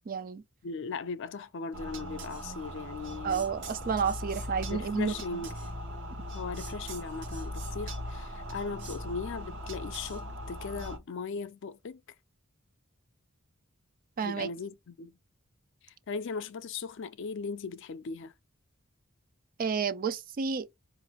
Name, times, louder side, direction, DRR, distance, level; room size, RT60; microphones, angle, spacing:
voice 1, 0.1-0.4 3.2-5.1 14.2-14.5 19.6-20.7, right 6 dB, 45° right, 0.4 m, -30 dB
voice 2, 0.6-3.5 4.7-5.6 6.3-12.0 14.2-15.2 15.8-18.3, left 4 dB, 65° left, 0.5 m, -38 dB
sound 1, 1.7-11.0, equal, 60° right, 0.9 m, -39 dB
4.7 x 2.5 x 2.9 m
head